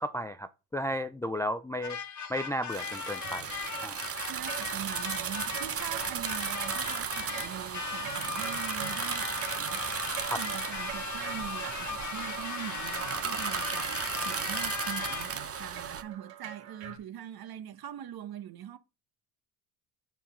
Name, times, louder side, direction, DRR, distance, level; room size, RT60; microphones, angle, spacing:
voice 1, 0.0-2.0 2.3-3.5 3.8-4.1 10.3-10.4, equal, 5° left, 0.4 m, -34 dB
sound 1, 1.8-15.5, left 6 dB, 35° left, 1.7 m, -38 dB
sound 2, 2.7-16.0, right 7 dB, 30° right, 1.0 m, -35 dB
sound 3, 3.2-17.0, right 10 dB, 80° right, 1.9 m, -46 dB
voice 2, 4.3-9.8 10.4-18.8, right 10 dB, 50° right, 1.2 m, -43 dB
7.2 x 4.5 x 5.5 m
hypercardioid pair, 70°, 47 cm